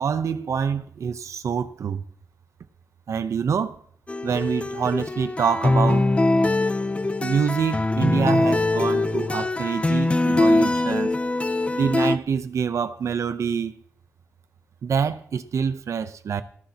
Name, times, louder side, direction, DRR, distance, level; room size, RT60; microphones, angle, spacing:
voice 1, 0.0-2.0 3.1-3.8 4.2-6.1 7.2-11.2 11.7-13.8 14.8-16.4, right 6 dB, 85° right, 0.7 m, -26 dB
sound 1, 4.1-12.2, left 2 dB, 25° left, 0.6 m, -22 dB
18.0 x 14.5 x 2.9 m
wide cardioid pair, 90°, 5 cm